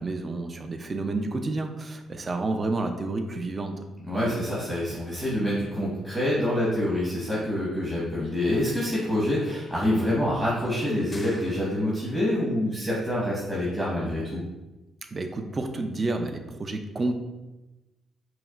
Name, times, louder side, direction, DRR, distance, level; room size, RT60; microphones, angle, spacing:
voice 1, 0.0-3.7 15.1-17.1, right 2 dB, 35° right, 5 dB, 0.4 m, -30 dB
voice 2, 4.1-14.4, left 1 dB, 10° right, -7 dB, 1.1 m, -26 dB
sound 1, 11.1-12.2, left 2 dB, 20° left, 0.5 m, -46 dB
5.6 x 2.1 x 2.4 m, 1.1 s
cardioid pair, 90°, 0 cm